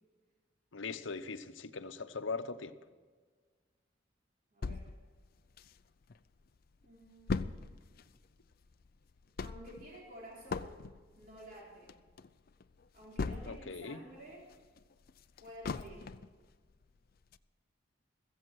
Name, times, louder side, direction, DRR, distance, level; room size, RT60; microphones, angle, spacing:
voice 1, 0.7-2.7 13.5-14.0, left 4 dB, 85° left, 9 dB, 0.9 m, -40 dB
voice 2, 4.5-4.9 6.8-7.6 9.4-10.8 11.2-11.9 12.9-14.5 15.4-16.1, right 1 dB, 50° right, -4 dB, 4.2 m, -52 dB
sound 1, 4.6-6.2 6.6-6.7 6.8-13.8 14.2-16.4 16.8-16.9 17.3-17.4, left 4 dB, 50° left, 0.5 m, -40 dB
15.5 x 15.0 x 4.7 m, 1.5 s
head